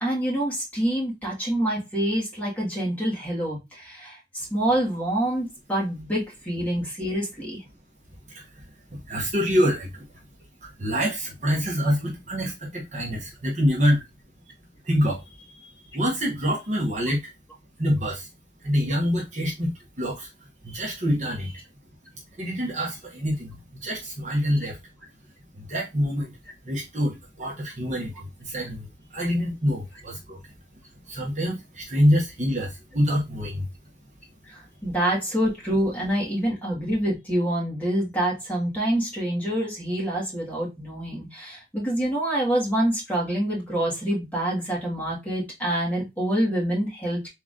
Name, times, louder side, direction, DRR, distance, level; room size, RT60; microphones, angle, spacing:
voice 1, 0.0-7.6 15.6-15.7 20.7-20.9 34.4-47.3, right 1 dB, 10° left, 1.9 m, -26 dB
voice 2, 9.1-10.0 10.6-14.0 14.9-15.2 15.9-17.2 17.8-18.3 18.6-20.3 20.6-21.5 22.4-24.8 25.6-26.4 26.6-28.9 29.1-30.4 31.1-33.7, equal, 40° right, 1.1 m, -26 dB
3.7 x 3.0 x 3.6 m
head